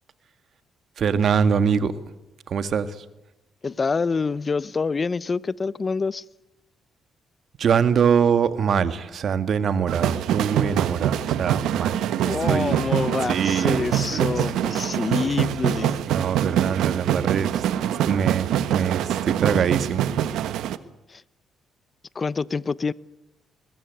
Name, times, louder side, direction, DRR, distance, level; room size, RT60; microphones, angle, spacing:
voice 1, 1.0-1.9 2.5-3.1 7.6-12.1 12.5-12.7 13.3-14.8 16.1-17.6 18.0-20.1, right 7 dB, 60° right, 11 dB, 1.8 m, -24 dB
voice 2, 3.6-6.2 12.2-16.0 21.1-21.2 22.1-22.9, left 4 dB, 35° left, 19 dB, 0.8 m, -26 dB
sound 1, 9.9-20.8, right 10 dB, 85° right, 1.2 m, -24 dB
22.5 x 21.0 x 9.4 m, 0.95 s
cardioid pair, 90°, 0 cm